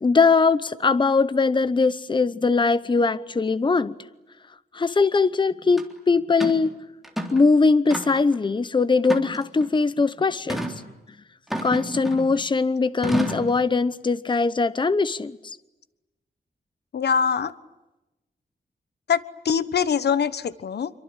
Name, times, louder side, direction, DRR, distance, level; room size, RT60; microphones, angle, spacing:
voice 1, 0.0-3.9 4.7-6.7 7.3-10.7 11.6-15.4, left 4 dB, 30° left, 15 dB, 0.9 m, -21 dB
sound 1, 5.8-5.9 6.4-6.6 7.0-7.5 7.9-8.4 9.0-9.7 10.5-10.8 11.5-12.4 13.0-13.5, equal, ahead, 3.6 m, -30 dB
voice 2, 16.9-17.5 19.1-20.9, left 7 dB, 90° left, 15 dB, 1.2 m, -23 dB
27.0 x 24.5 x 9.0 m, 1.0 s
wide cardioid pair, 140°, 17 cm